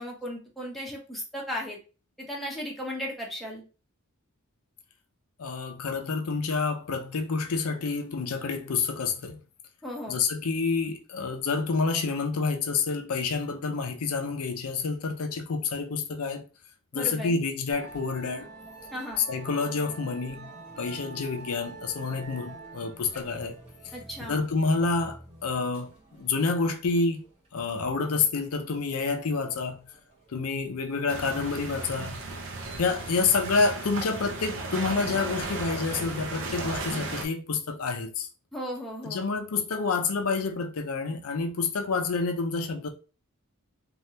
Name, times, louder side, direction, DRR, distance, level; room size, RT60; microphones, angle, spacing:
voice 1, 0.0-1.8 2.2-3.6 9.8-10.2 16.9-17.4 18.9-19.3 23.9-24.4 38.5-39.2, equal, ahead, 0.7 m, -36 dB
voice 2, 5.4-9.4 10.1-16.4 16.9-18.5 19.2-20.5 20.8-23.6 24.3-25.9 26.2-27.2 27.5-29.8 30.3-32.2 32.8-38.3 39.0-42.9, left 4 dB, 75° left, 0.5 m, -28 dB
Musical instrument, 17.7-33.2, right 2 dB, 30° right, 1.1 m, -48 dB
sound 1, 31.1-37.2, right 2 dB, 60° right, 0.5 m, -35 dB
3.2 x 2.3 x 2.7 m
head